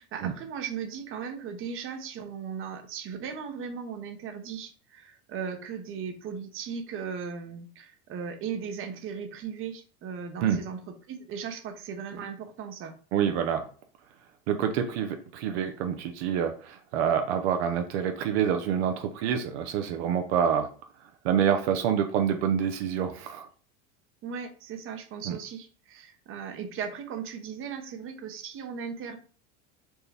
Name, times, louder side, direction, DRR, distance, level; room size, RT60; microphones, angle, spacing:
voice 1, 0.0-10.8 11.1-12.9 24.2-29.2, right 6 dB, 40° right, 6 dB, 0.8 m, -37 dB
voice 2, 13.1-13.7 14.5-20.7 21.2-23.5 25.3-25.4, right 8 dB, 75° right, 6 dB, 0.6 m, -27 dB
4.4 x 2.1 x 3.4 m, 0.40 s
supercardioid pair, 115°, 33 cm